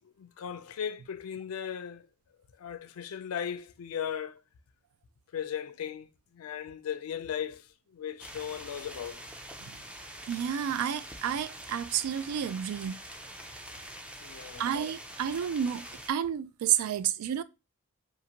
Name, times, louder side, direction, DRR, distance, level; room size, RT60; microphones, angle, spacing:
voice 1, 0.2-2.1 2.6-4.4 5.3-9.3 14.2-14.7, left 8 dB, 75° left, 0.4 m, -37 dB
sound 1, 8.2-16.1, right 1 dB, 5° right, 0.3 m, -45 dB
voice 2, 10.3-13.0 14.6-17.4, right 9 dB, 85° right, 0.3 m, -30 dB
2.6 x 2.5 x 2.8 m
head